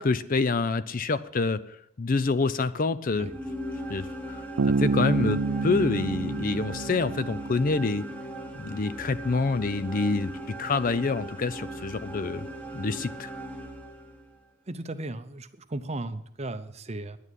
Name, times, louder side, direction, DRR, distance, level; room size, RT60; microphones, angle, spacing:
voice 1, 0.0-3.3 3.9-4.4 4.8-8.1 8.5-12.5 12.7-13.3, left 3 dB, 40° left, 15 dB, 0.5 m, -27 dB
sound 1, 3.0-14.4, right 1 dB, 5° left, 1.2 m, -39 dB
Bass guitar, 4.6-8.1, right 3 dB, 75° right, 0.6 m, -28 dB
voice 2, 14.7-17.2, right 2 dB, 30° right, 11 dB, 0.7 m, -36 dB
10.5 x 9.4 x 8.2 m, 0.76 s
head